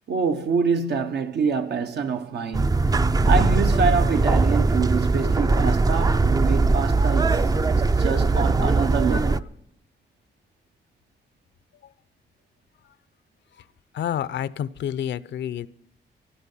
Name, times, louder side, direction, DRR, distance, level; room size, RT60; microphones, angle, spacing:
voice 1, 0.1-2.9 3.2-7.4 7.7-9.5, right 5 dB, 70° right, 1.1 m, -26 dB
sound 1, 2.5-9.4, right 3 dB, 20° right, 0.4 m, -20 dB
voice 2, 13.9-15.7, left 10 dB, 80° left, 0.6 m, -29 dB
16.0 x 12.0 x 5.6 m
cardioid pair, 100°, 18 cm